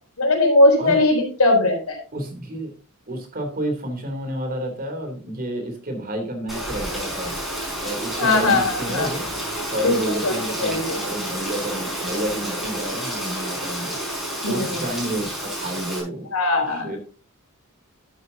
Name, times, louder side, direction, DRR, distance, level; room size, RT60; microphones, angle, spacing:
voice 1, 0.2-2.0 8.2-9.1 9.8-9.9 10.2-10.9 14.4-14.8 16.3-16.9, left 2 dB, 80° left, 2 dB, 4.1 m, -19 dB
voice 2, 2.1-2.7 3.1-7.3 7.8-9.2 9.7-14.0 14.4-16.3 16.7-17.0, right 1 dB, 40° right, 4 dB, 3.2 m, -30 dB
Rain, 6.5-16.0, right 1 dB, ahead, 5.7 m, -30 dB
11.5 x 9.8 x 2.8 m, 0.37 s
head